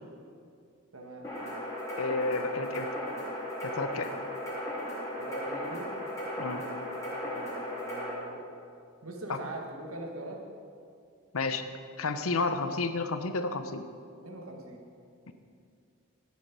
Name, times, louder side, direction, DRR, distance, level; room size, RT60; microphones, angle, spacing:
voice 1, 0.9-1.3 5.1-5.9 7.1-8.4 9.0-10.4 14.2-14.9, right 1 dB, 85° right, 1 dB, 1.9 m, -42 dB
sound 1, 1.2-8.1, equal, 15° left, 3.7 m, -36 dB
voice 2, 2.0-2.9 3.6-4.1 6.4-6.6 9.3-9.4 11.3-11.6 12.0-13.8 15.3-15.4, left 3 dB, 85° left, 9 dB, 0.8 m, -31 dB
14.0 x 9.5 x 5.4 m, 2.4 s
head